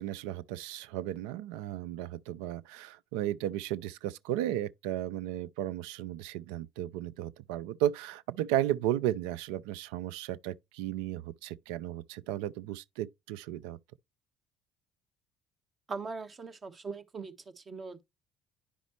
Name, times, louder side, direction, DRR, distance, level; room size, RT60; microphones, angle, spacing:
voice 1, 0.0-13.8, right 12 dB, 75° right, 0.4 m, -34 dB
voice 2, 15.9-18.0, right 4 dB, 35° right, 1.3 m, -40 dB
10.0 x 5.0 x 3.1 m
hypercardioid pair, 55°, 0 cm